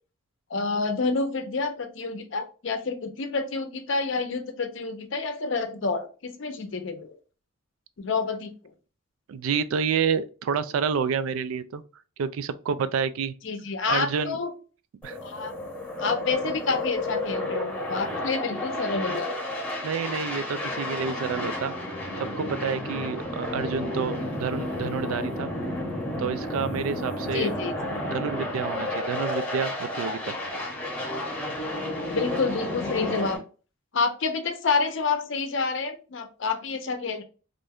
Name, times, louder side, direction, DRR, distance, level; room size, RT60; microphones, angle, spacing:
voice 1, 0.5-7.1 8.0-8.5 13.4-14.5 15.2-15.5 16.0-19.3 27.3-27.7 32.1-33.4 33.9-37.2, left 4 dB, 60° left, 0.5 m, -28 dB
voice 2, 9.3-11.8 12.2-13.3 13.9-14.4 15.0-15.2 19.8-21.7 22.4-25.5 26.2-27.5 28.0-30.4, right 6 dB, 80° right, 0.3 m, -29 dB
sound 1, 15.0-33.4, left 1 dB, 5° left, 0.8 m, -31 dB
2.5 x 2.2 x 3.4 m
head